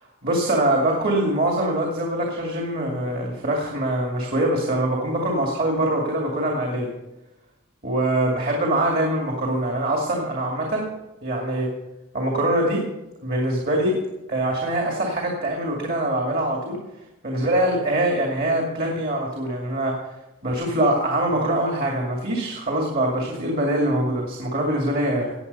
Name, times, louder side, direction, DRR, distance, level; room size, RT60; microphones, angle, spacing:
voice 1, 0.2-6.9 7.8-10.9 11.2-11.7 12.1-12.8 13.2-14.0 14.3-16.8 17.2-20.0 20.4-25.3, right 1 dB, 45° right, -1 dB, 2.3 m, -23 dB
16.5 x 9.1 x 5.5 m, 0.96 s
head